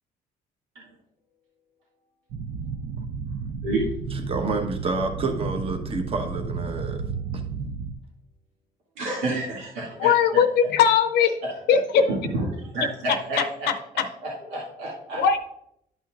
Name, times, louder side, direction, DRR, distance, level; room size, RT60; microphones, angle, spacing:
sound 1, 2.3-7.9, right 5 dB, 70° right, 0.6 m, -32 dB
voice 1, 4.1-7.0, right 3 dB, 35° right, 4 dB, 1.1 m, -29 dB
voice 2, 9.0-10.1 11.4-15.4, right 2 dB, 85° right, -6 dB, 2.3 m, -30 dB
voice 3, 10.0-11.3 11.7-12.0 15.2-15.4, left 7 dB, 75° left, 9 dB, 0.6 m, -19 dB
11.5 x 5.7 x 2.4 m, 0.76 s
cardioid pair, 110°, 17 cm